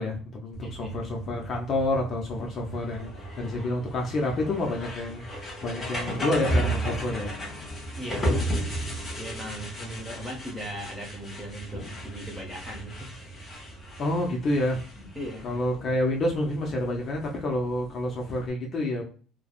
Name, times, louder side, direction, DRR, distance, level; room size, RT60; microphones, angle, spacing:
voice 1, 0.0-7.3 14.0-14.8 15.4-19.0, left 1 dB, 35° left, 0 dB, 0.5 m, -28 dB
sound 1, 0.5-18.5, right 1 dB, 20° left, 0.9 m, -34 dB
voice 2, 0.6-1.0 7.9-8.5 9.2-13.4 15.0-15.6, equal, 10° right, -1 dB, 0.9 m, -39 dB
3.2 x 2.0 x 2.3 m, 0.40 s
cardioid pair, 145°, 0 cm